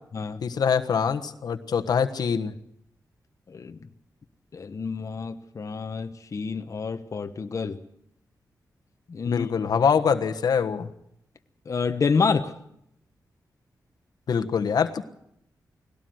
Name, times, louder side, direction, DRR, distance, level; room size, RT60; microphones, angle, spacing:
voice 1, 0.4-2.5 9.3-10.9 14.3-15.0, left 6 dB, 75° left, 7 dB, 1.3 m, -24 dB
voice 2, 4.5-7.8 9.1-9.5 11.7-12.5, left 5 dB, 50° left, 7 dB, 1.2 m, -28 dB
20.0 x 17.5 x 7.9 m, 0.74 s
cardioid pair, 90°, 7 cm